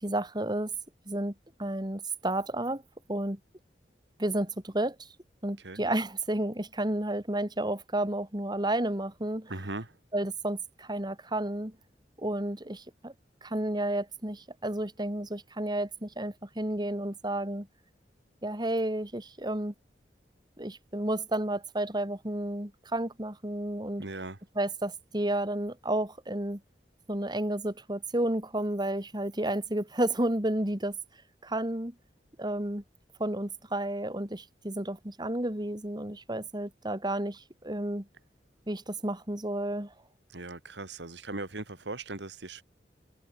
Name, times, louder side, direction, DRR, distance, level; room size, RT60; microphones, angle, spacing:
voice 1, 0.0-0.7 1.1-1.3 1.6-2.8 3.1-3.4 4.2-5.0 5.4-9.5 10.1-11.7 12.2-13.1 13.4-17.7 18.4-19.7 20.6-24.0 24.6-26.6 27.1-31.0 31.4-31.9 32.4-32.8 33.2-38.1 38.7-39.9, right 1 dB, 25° right, 2.8 m, -31 dB
voice 2, 9.5-10.0 24.0-24.4 40.3-42.6, right 2 dB, 90° right, 2.5 m, -39 dB
head